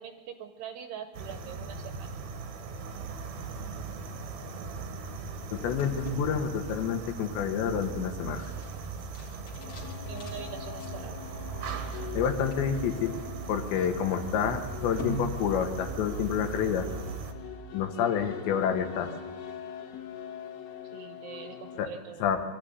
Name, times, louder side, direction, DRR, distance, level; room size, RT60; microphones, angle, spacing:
voice 1, 0.0-2.1 9.6-11.2 20.8-22.3, right 8 dB, 75° right, 8 dB, 2.6 m, -43 dB
sound 1, 1.1-17.3, right 4 dB, 60° right, 2.0 m, -39 dB
voice 2, 5.5-8.5 12.2-13.2 13.5-16.9 17.7-19.1 21.8-21.9 22.2-22.4, left 8 dB, 70° left, 6 dB, 3.4 m, -28 dB
sound 2, 5.5-16.0, equal, 35° left, 3.0 m, -45 dB
sound 3, 9.6-21.9, left 9 dB, 90° left, 4.2 m, -43 dB
23.0 x 14.0 x 9.4 m, 1.3 s
omnidirectional pair, 5.6 m